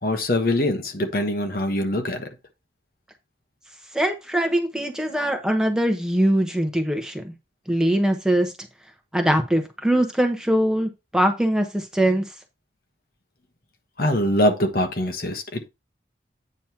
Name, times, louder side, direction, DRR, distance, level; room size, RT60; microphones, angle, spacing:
voice 1, 0.0-2.3 14.0-15.7, left 1 dB, 55° left, 1.3 m, -23 dB
voice 2, 3.9-7.3 7.7-8.5 9.1-12.3, right 1 dB, 5° right, 1.1 m, -22 dB
8.9 x 3.1 x 5.8 m
head